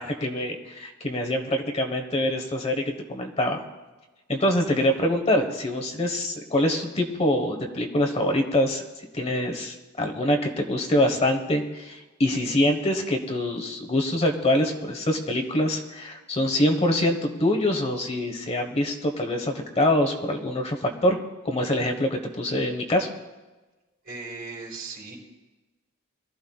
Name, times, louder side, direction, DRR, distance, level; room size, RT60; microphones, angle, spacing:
voice 1, 0.0-3.6 4.3-8.8 9.1-21.2 21.4-23.1, left 1 dB, 30° left, 4 dB, 1.2 m, -25 dB
voice 2, 24.0-25.2, right 4 dB, 45° right, -3 dB, 4.8 m, -37 dB
23.0 x 14.0 x 2.3 m, 1.2 s
head